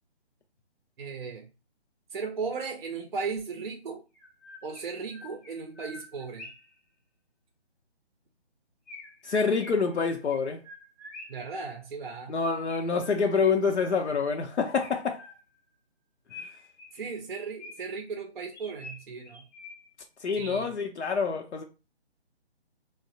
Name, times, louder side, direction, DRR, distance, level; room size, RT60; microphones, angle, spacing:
voice 1, 1.0-1.5 2.1-4.0 4.6-6.5 11.3-12.3 16.9-19.5 20.4-20.7, right 5 dB, 50° right, 0.5 m, -36 dB
Chirp tweet, 3.4-3.5 4.1-6.8 8.9-11.5 12.7-14.3 14.8-15.7 16.3-18.1 18.5-20.0, left 2 dB, 15° left, 0.6 m, -48 dB
voice 2, 9.2-10.6 12.3-15.2 16.4-16.5 20.2-21.6, left 5 dB, 85° left, 0.6 m, -27 dB
3.0 x 2.0 x 2.6 m
figure-of-eight pair, 155°, 33 cm